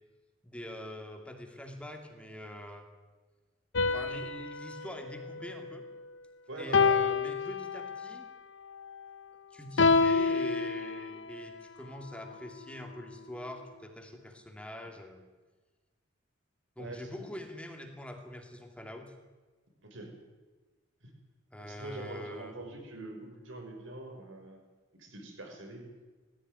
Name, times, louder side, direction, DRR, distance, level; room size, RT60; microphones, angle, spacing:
voice 1, 0.4-2.9 3.9-5.9 6.6-8.3 9.5-15.2 16.8-19.1 21.5-22.6, left 1 dB, 5° left, 4 dB, 2.6 m, -44 dB
sound 1, 3.7-6.2 6.7-8.2 9.8-11.5, left 4 dB, 65° left, 1.1 m, -28 dB
voice 2, 6.5-7.0 16.8-17.3 19.8-20.1 21.0-21.1 21.6-24.6 24.9-25.9, right 2 dB, 70° right, 2 dB, 5.9 m, -44 dB
19.0 x 15.5 x 9.5 m, 1.3 s
head